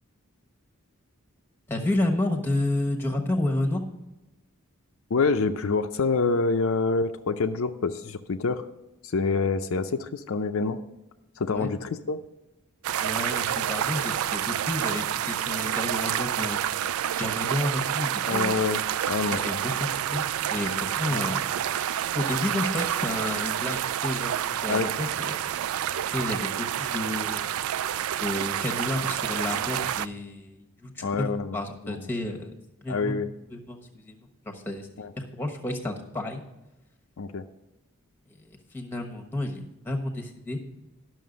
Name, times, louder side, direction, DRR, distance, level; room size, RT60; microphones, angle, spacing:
voice 1, 1.7-3.8 11.5-11.7 13.0-16.6 17.2-18.6 19.3-21.5 22.1-24.4 24.6-25.4 26.1-27.5 28.2-31.3 31.5-32.5 32.8-34.2 34.4-35.1 35.3-36.4 38.3-40.6, left 1 dB, 10° left, 3 dB, 1.1 m, -31 dB
voice 2, 5.1-8.7 9.0-10.8 11.4-12.2 18.3-19.4 21.1-21.2 24.7-24.9 31.0-32.0 32.9-33.3 35.0-35.1 37.2-37.4, left 4 dB, 65° left, 7 dB, 0.5 m, -27 dB
sound 1, 12.8-30.1, right 10 dB, 70° right, 0.3 m, -28 dB
11.0 x 6.4 x 5.2 m, 0.97 s
head